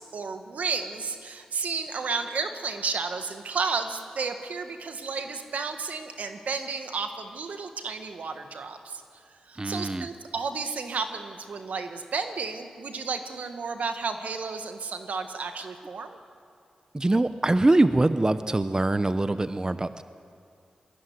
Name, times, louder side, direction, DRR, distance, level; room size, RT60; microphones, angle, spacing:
voice 1, 0.0-9.0 9.4-16.2, right 4 dB, 80° right, 7 dB, 1.6 m, -32 dB
voice 2, 9.6-10.1 16.9-20.0, right 2 dB, 30° right, 12 dB, 0.8 m, -23 dB
21.0 x 15.0 x 9.5 m, 2.3 s
cardioid pair, 40°, 3 cm